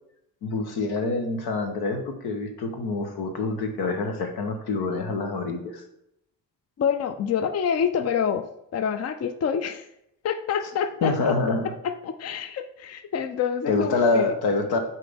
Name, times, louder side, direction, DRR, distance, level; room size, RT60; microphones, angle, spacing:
voice 1, 0.4-5.8 11.0-11.7 13.7-14.8, left 3 dB, 85° left, 5 dB, 1.0 m, -26 dB
voice 2, 6.8-8.4 8.7-9.9 10.2-11.4 11.8-14.3, left 7 dB, 45° left, 10 dB, 0.5 m, -27 dB
7.5 x 4.2 x 3.5 m, 0.81 s
cardioid pair, 65°, 37 cm